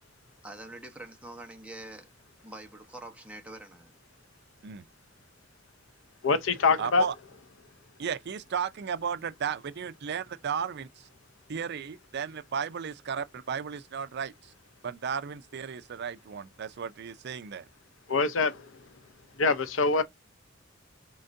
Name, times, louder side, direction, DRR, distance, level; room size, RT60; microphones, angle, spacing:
voice 1, 0.4-2.1 2.4-3.9, right 1 dB, 5° right, 1.0 m, -45 dB
voice 2, 6.2-7.1 18.1-18.7 19.4-20.0, left 4 dB, 70° left, 0.6 m, -24 dB
voice 3, 6.8-7.1 8.0-11.1 11.5-14.5 14.8-17.7, right 7 dB, 55° right, 0.5 m, -34 dB
4.4 x 3.8 x 2.6 m
head